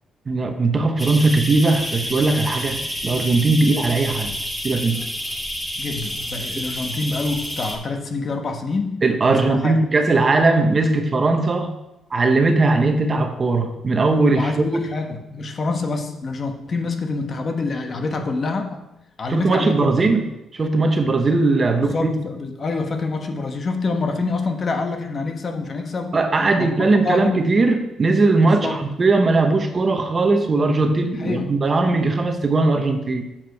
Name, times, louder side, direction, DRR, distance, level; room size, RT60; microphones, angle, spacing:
voice 1, 0.3-4.3 4.6-5.1 6.6-6.7 9.0-11.7 12.1-14.8 19.3-20.3 20.5-21.9 26.1-33.3, right 3 dB, 35° right, 6 dB, 1.0 m, -19 dB
sound 1, 1.0-7.7, equal, 5° left, 1.7 m, -29 dB
voice 2, 5.8-9.0 9.3-9.7 14.3-18.8 19.2-20.1 21.7-26.2 26.6-27.4 28.4-28.8 31.2-31.5, left 3 dB, 45° left, 5 dB, 1.3 m, -26 dB
7.3 x 5.0 x 6.6 m, 0.90 s
cardioid pair, 90°, 0 cm